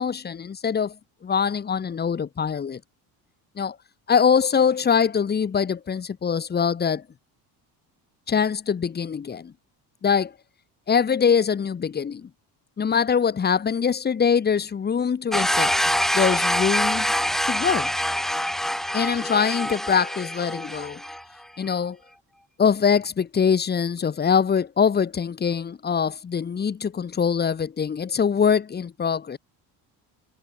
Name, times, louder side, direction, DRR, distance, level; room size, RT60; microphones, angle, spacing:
voice 1, 0.0-2.8 3.6-3.8 4.1-7.0 8.3-9.5 10.0-10.3 10.9-12.3 12.8-15.7 16.1-17.1 17.4-17.9 18.9-21.0 21.6-22.0 22.6-29.4, left 6 dB, 25° left, 2.7 m, -23 dB
sound 1, 15.3-21.2, equal, ahead, 0.9 m, -25 dB
cardioid pair, 175°, 40 cm